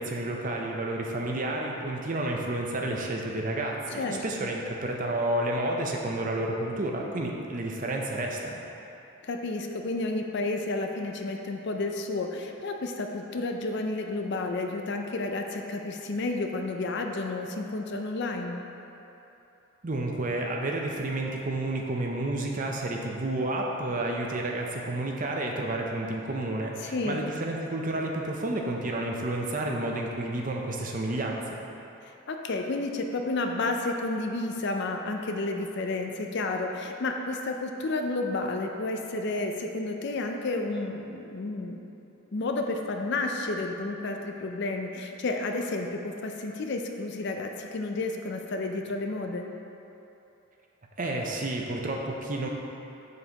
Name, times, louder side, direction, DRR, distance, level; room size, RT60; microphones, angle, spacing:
voice 1, 0.0-8.6 19.8-31.6 51.0-52.5, right 1 dB, 35° right, 0 dB, 0.6 m, -30 dB
voice 2, 3.9-4.5 9.2-18.6 26.8-27.3 32.1-41.8 42.3-49.5, left 2 dB, 50° left, 3 dB, 0.4 m, -31 dB
7.1 x 6.5 x 2.9 m, 2.9 s
head